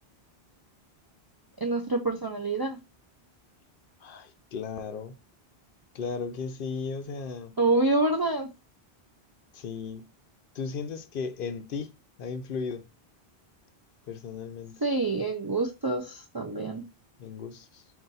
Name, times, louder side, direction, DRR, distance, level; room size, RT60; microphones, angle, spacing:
voice 1, 1.6-2.8 7.6-8.5 14.8-16.8, right 2 dB, 40° right, 0.3 m, -27 dB
voice 2, 4.0-5.2 5.9-7.6 9.5-10.1 10.5-12.9 14.1-14.8 17.2-17.8, left 5 dB, 65° left, 0.7 m, -36 dB
3.8 x 2.6 x 4.0 m
omnidirectional pair, 1.1 m